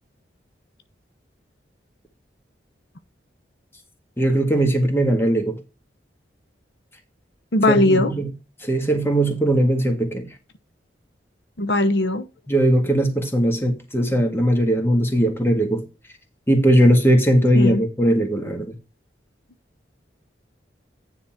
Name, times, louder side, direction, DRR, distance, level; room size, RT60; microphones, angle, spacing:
voice 1, 4.2-5.6 7.7-8.3 8.6-10.3 12.5-15.9 16.5-18.7, right 1 dB, 15° left, 1.7 m, -19 dB
voice 2, 7.5-8.1 11.6-12.3 17.5-17.8, left 1 dB, 70° left, 0.9 m, -19 dB
9.7 x 4.0 x 5.7 m
head